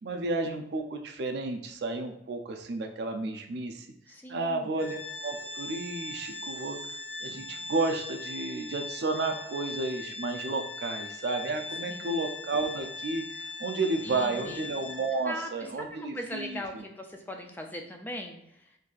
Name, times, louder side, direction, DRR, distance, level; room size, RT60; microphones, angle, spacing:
voice 1, 0.0-3.9 4.3-16.6, right 3 dB, 60° right, 5 dB, 0.4 m, -32 dB
voice 2, 4.1-4.8 11.9-12.2 14.0-14.6 15.2-18.8, equal, 10° left, 2 dB, 0.3 m, -40 dB
Organ, 4.8-15.4, left 3 dB, 90° left, 0.9 m, -40 dB
3.8 x 2.6 x 2.4 m, 0.79 s
head